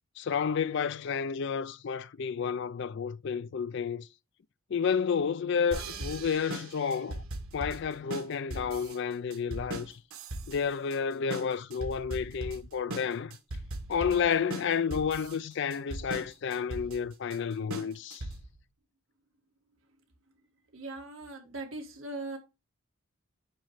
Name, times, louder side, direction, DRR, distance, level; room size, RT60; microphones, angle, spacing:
voice 1, 0.2-4.1 4.7-7.2 7.5-10.0 10.5-13.4 13.9-18.3, left 6 dB, 55° left, 0.4 m, -31 dB
sound 1, 5.7-18.6, right 2 dB, 85° right, 1.3 m, -39 dB
voice 2, 20.7-22.4, right 2 dB, 70° right, 1.8 m, -40 dB
8.8 x 3.1 x 4.8 m
head